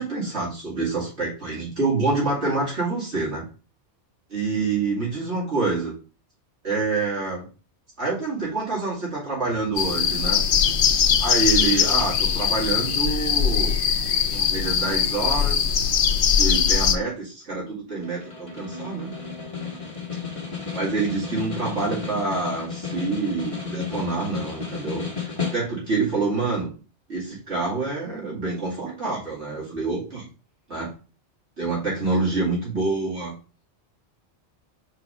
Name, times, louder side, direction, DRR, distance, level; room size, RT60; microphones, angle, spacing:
voice 1, 0.0-3.4 4.3-5.9 6.6-7.4 8.0-10.4 11.2-13.8 14.3-15.7 16.3-19.1 20.7-26.7 27.1-30.3 30.7-30.9 31.6-33.3, right 3 dB, 70° right, -6 dB, 2.7 m, -27 dB
sound 1, 9.8-17.0, left 7 dB, 55° left, 0.7 m, -21 dB
Snare drum, 18.0-26.0, left 5 dB, 30° left, 1.7 m, -33 dB
4.8 x 4.6 x 5.4 m, 0.36 s
omnidirectional pair, 1.2 m